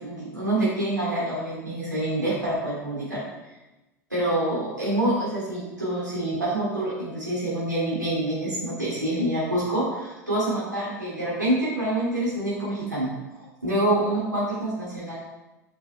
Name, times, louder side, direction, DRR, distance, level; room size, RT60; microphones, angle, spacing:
voice 1, 0.0-3.2 4.1-15.2, right 1 dB, 90° right, -8 dB, 2.7 m, -26 dB
8.8 x 5.4 x 3.3 m, 1.0 s
figure-of-eight pair, 80°, 10 cm